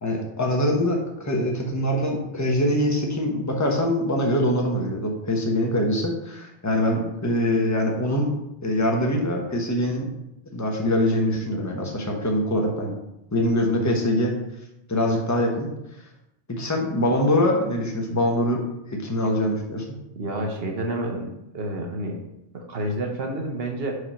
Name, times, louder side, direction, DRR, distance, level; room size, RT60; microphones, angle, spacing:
voice 1, 0.0-10.1 10.5-12.9 13.3-14.3 14.9-15.7 16.5-19.8, left 1 dB, 15° left, 1 dB, 0.9 m, -23 dB
voice 2, 20.2-21.3 21.5-22.2 22.5-24.0, right 1 dB, 70° right, 2 dB, 1.1 m, -29 dB
5.0 x 4.4 x 5.6 m, 0.88 s
omnidirectional pair, 1.1 m